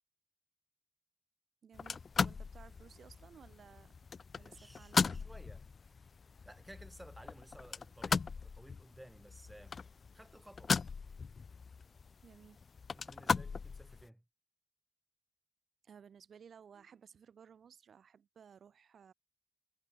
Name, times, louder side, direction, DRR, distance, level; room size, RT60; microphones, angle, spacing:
voice 1, 1.6-3.9 4.3-5.3 12.2-12.6 15.8-19.1, right 7 dB, 85° right, 5.7 m, -58 dB
sound 1, 1.7-14.1, left 5 dB, 60° left, 0.3 m, -38 dB
voice 2, 4.4-5.7 6.4-9.8 10.1-10.8 12.9-14.2, right 1 dB, 10° right, 6.5 m, -56 dB
cardioid pair, 80°, 0 cm